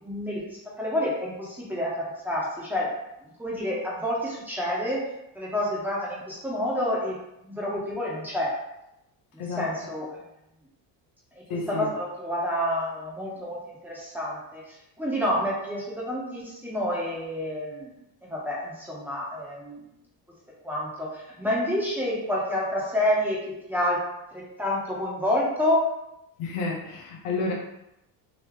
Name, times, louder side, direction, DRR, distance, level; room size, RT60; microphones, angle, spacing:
voice 1, 0.0-2.9 3.4-5.1 5.3-8.5 9.3-10.2 11.5-17.9 18.3-19.8 20.6-25.9, left 1 dB, 5° right, -5 dB, 1.4 m, -29 dB
voice 2, 9.4-9.7 11.5-11.9 26.4-27.5, left 3 dB, 80° left, -1 dB, 1.1 m, -30 dB
4.0 x 2.9 x 3.1 m, 0.86 s
supercardioid pair, 95°, 50 cm